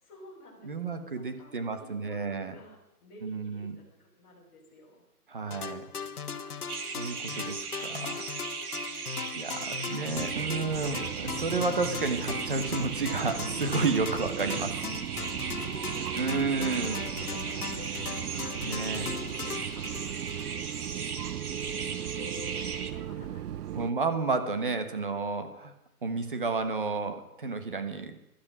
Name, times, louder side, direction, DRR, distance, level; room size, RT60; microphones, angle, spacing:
voice 1, 0.0-5.0 9.1-11.2 14.2-14.3 15.5-20.9 21.5-24.0, left 1 dB, 20° left, -8 dB, 3.5 m, -51 dB
voice 2, 0.6-2.5 3.2-3.8 5.3-5.8 6.9-8.2 8.8-14.7 16.2-17.0 18.6-19.0 23.7-25.7 26.0-28.2, right 4 dB, 35° right, 8 dB, 1.3 m, -31 dB
sound 1, 5.5-20.9, left 6 dB, 75° left, 1.4 m, -39 dB
sound 2, 6.7-22.9, right 5 dB, 75° right, 1.9 m, -38 dB
sound 3, 10.1-23.9, right 11 dB, 90° right, 0.5 m, -38 dB
16.0 x 12.0 x 6.1 m, 0.87 s
hypercardioid pair, 180°, 45 cm